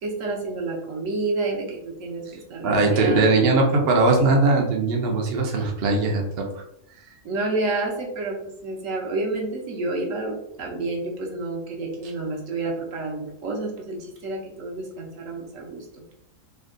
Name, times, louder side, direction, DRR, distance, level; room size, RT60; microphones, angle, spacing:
voice 1, 0.0-3.5 7.2-16.0, right 2 dB, 75° right, 0 dB, 1.2 m, -29 dB
voice 2, 2.6-6.5, right 3 dB, 55° right, 1 dB, 0.8 m, -20 dB
3.3 x 2.2 x 3.6 m, 0.76 s
omnidirectional pair, 1.4 m